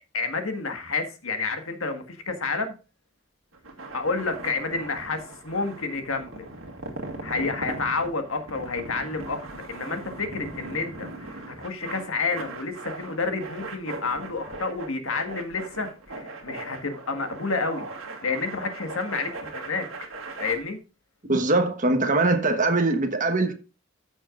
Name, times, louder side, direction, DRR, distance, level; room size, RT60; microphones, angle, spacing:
voice 1, 0.1-2.7 3.9-6.4 7.2-19.9 20.4-20.8, left 4 dB, 80° left, 1.7 m, -30 dB
sound 1, 3.5-20.5, right 2 dB, 75° right, 2.1 m, -39 dB
voice 2, 21.3-23.5, right 2 dB, 40° right, 1.2 m, -22 dB
14.5 x 6.2 x 2.5 m
head